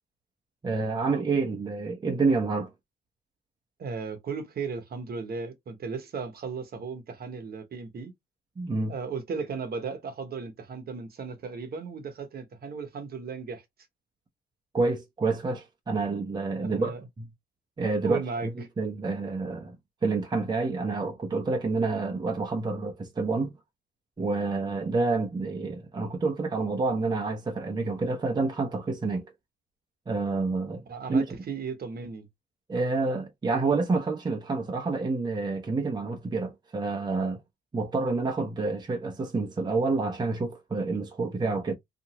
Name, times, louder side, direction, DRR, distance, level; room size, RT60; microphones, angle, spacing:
voice 1, 0.6-2.7 8.6-8.9 14.7-17.2 17.8-18.2 18.6-19.8 20.0-23.5 24.2-29.3 30.1-30.8 31.1-31.2 32.7-37.4 37.7-41.7, right 3 dB, 20° right, 0.7 m, -28 dB
voice 2, 3.8-8.1 8.9-13.6 16.6-17.0 18.0-18.5 30.9-32.3, right 5 dB, 50° right, 0.9 m, -35 dB
2.8 x 2.5 x 2.8 m
cardioid pair, 90°, 20 cm